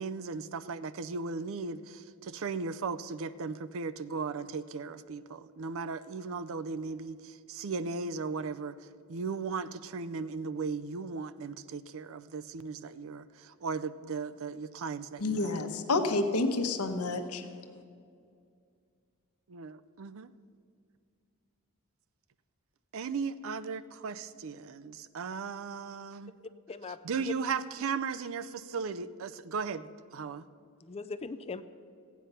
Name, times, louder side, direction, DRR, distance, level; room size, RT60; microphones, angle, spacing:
voice 1, 0.0-8.8 9.1-15.6 16.0-16.1 19.5-20.3 22.9-26.3 27.0-30.5, right 5 dB, 65° right, 14 dB, 0.5 m, -37 dB
voice 2, 15.2-17.4, left 3 dB, 85° left, 6 dB, 1.1 m, -29 dB
voice 3, 26.7-27.3 30.8-31.6, left 4 dB, 30° left, 12 dB, 0.4 m, -39 dB
14.5 x 9.4 x 5.6 m, 2.3 s
head